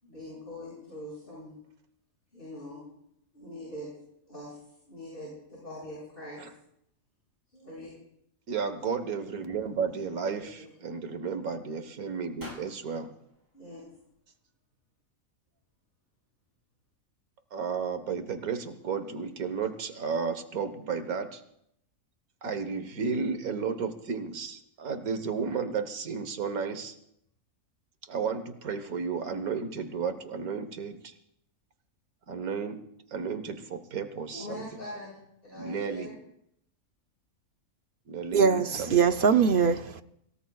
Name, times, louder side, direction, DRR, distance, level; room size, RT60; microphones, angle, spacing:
voice 1, 0.0-1.5 2.3-2.8 3.3-3.9 4.3-4.6 4.8-6.4 7.5-7.9 10.4-10.7 13.5-13.8 34.3-35.1 35.4-36.2, left 1 dB, 40° left, 7.2 m, -42 dB
voice 2, 8.5-13.1 17.5-21.4 22.4-27.0 28.0-31.1 32.3-32.8 33.1-34.6 35.6-36.1 38.1-39.1, right 5 dB, 80° right, 1.7 m, -33 dB
sound 1, 12.4-14.5, equal, 15° right, 4.1 m, -51 dB
voice 3, 38.3-40.0, right 6 dB, 50° right, 0.7 m, -22 dB
26.0 x 18.5 x 2.4 m
omnidirectional pair, 1.5 m